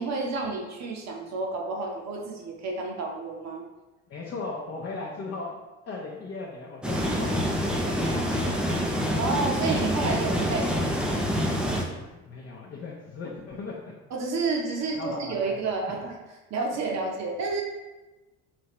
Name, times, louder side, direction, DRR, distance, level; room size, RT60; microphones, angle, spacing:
voice 1, 0.0-3.6 9.2-11.1 14.1-16.1 16.5-17.6, right 3 dB, 45° right, 0 dB, 0.9 m, -30 dB
voice 2, 4.1-5.5 5.8-9.0 12.1-13.9 15.0-15.6 15.9-16.0, left 3 dB, 35° left, -3 dB, 0.7 m, -38 dB
sound 1, 6.8-11.8, equal, ahead, 0.4 m, -26 dB
3.4 x 2.7 x 3.0 m, 1.1 s
hypercardioid pair, 65°, 38 cm